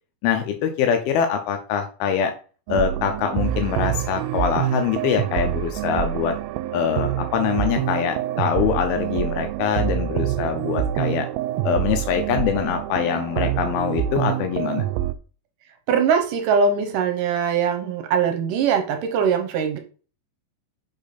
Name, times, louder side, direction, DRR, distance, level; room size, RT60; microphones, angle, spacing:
voice 1, 0.2-2.3 2.7-6.3 6.7-11.3 11.6-14.9, left 8 dB, 85° left, 6 dB, 2.7 m, -24 dB
sound 1, 2.7-15.1, right 12 dB, 90° right, 2.5 m, -26 dB
voice 2, 15.9-19.8, right 6 dB, 75° right, 7 dB, 2.2 m, -21 dB
6.8 x 5.4 x 4.1 m, 0.38 s
omnidirectional pair, 4.3 m